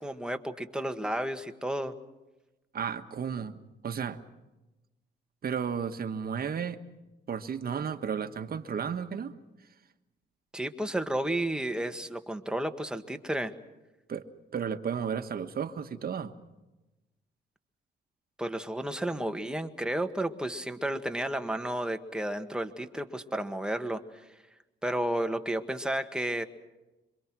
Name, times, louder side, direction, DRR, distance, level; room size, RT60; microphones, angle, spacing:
voice 1, 0.0-1.9 10.5-13.5 18.4-24.0 24.8-26.4, right 1 dB, 5° right, 6 dB, 1.8 m, -32 dB
voice 2, 2.7-3.6 3.8-4.2 5.4-6.8 7.3-9.3 14.1-16.4, right 7 dB, 50° right, 8 dB, 1.6 m, -33 dB
27.0 x 24.5 x 6.2 m, 1.1 s
cardioid pair, 90°, 20 cm